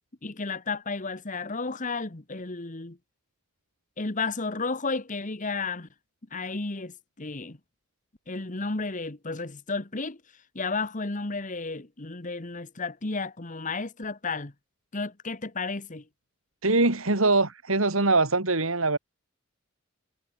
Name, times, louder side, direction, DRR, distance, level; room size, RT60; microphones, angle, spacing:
voice 1, 0.2-3.0 4.0-5.9 6.3-7.6 8.3-10.2 10.5-14.5 14.9-16.0, left 3 dB, 40° left, 1.4 m, -32 dB
voice 2, 16.6-19.0, right 3 dB, 80° right, 3.2 m, -23 dB
head